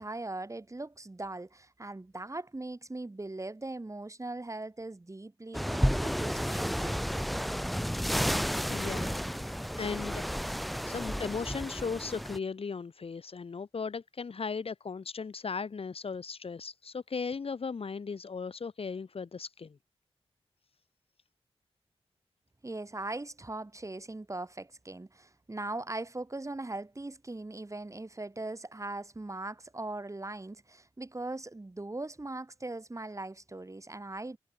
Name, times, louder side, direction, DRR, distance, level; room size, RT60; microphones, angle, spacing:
voice 1, 0.0-7.0 22.6-34.4, right 2 dB, 30° right, 4.6 m, -40 dB
sound 1, 5.5-12.4, equal, ahead, 1.5 m, -32 dB
voice 2, 8.7-10.2 10.5-19.8, left 5 dB, 70° left, 1.2 m, -37 dB
wide cardioid pair, 70°, 10 cm